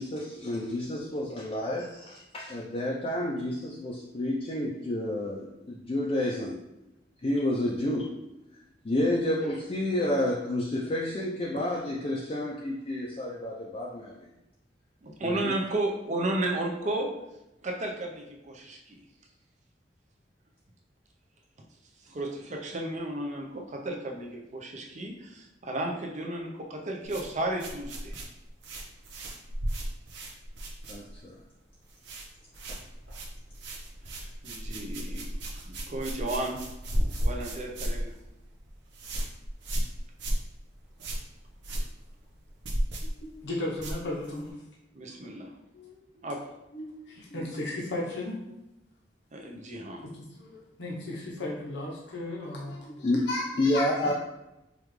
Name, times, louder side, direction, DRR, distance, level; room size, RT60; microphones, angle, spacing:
voice 1, 0.0-6.6 7.2-8.1 8.8-14.2 15.2-15.4 30.9-31.3 53.0-53.3 53.6-54.1, left 1 dB, 35° left, -3 dB, 0.5 m, -30 dB
voice 2, 15.0-17.1 17.6-19.0 22.0-28.1 34.0-35.4 35.7-36.6 36.9-38.1 44.9-45.5 46.2-46.4 47.4-47.5 49.3-50.1, right 1 dB, 45° right, 0 dB, 0.7 m, -33 dB
sound 1, 27.0-31.4 31.7-32.3 32.5-44.5, right 1 dB, 90° right, 0.8 m, -34 dB
voice 3, 43.2-44.6 45.7-46.3 46.7-48.4 50.4-54.1, left 1 dB, 80° left, -4 dB, 0.9 m, -35 dB
5.1 x 2.4 x 3.1 m, 0.93 s
head